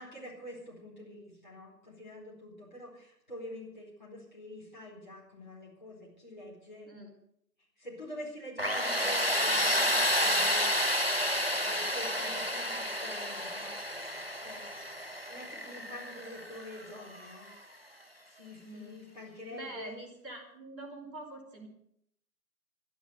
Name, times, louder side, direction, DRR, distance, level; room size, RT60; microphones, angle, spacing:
voice 1, 0.0-6.9 7.8-10.7 11.6-13.8 14.2-14.6 15.3-17.5 18.3-20.0, left 1 dB, 25° left, -4 dB, 4.2 m, -46 dB
Tools, 8.6-17.3, equal, 35° right, 0.6 m, -30 dB
voice 2, 18.6-19.0 19.5-21.7, right 1 dB, 10° right, -12 dB, 3.3 m, -45 dB
12.0 x 10.5 x 7.8 m, 0.71 s
figure-of-eight pair, 170°, 50 cm